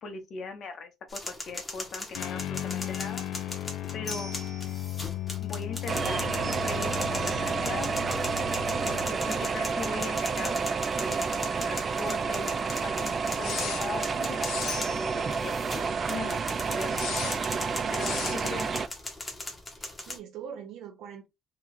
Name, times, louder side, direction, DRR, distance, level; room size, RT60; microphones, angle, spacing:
voice 1, 0.0-3.2 3.9-4.3 5.4-8.0 8.9-15.5 16.1-16.4 16.7-17.4 17.9-18.7, left 4 dB, 50° left, 0.9 m, -40 dB
sound 1, 1.1-20.2, left 2 dB, 15° left, 0.9 m, -39 dB
sound 2, 2.1-11.3 11.6-11.7 13.4-13.8 14.4-14.8 16.9-17.4 17.9-18.4, left 12 dB, 70° left, 0.4 m, -37 dB
sound 3, 5.9-18.9, right 5 dB, 30° right, 0.3 m, -30 dB
voice 2, 19.8-21.3, right 8 dB, 75° right, 0.6 m, -43 dB
3.0 x 2.4 x 3.9 m
cardioid pair, 155°, 0 cm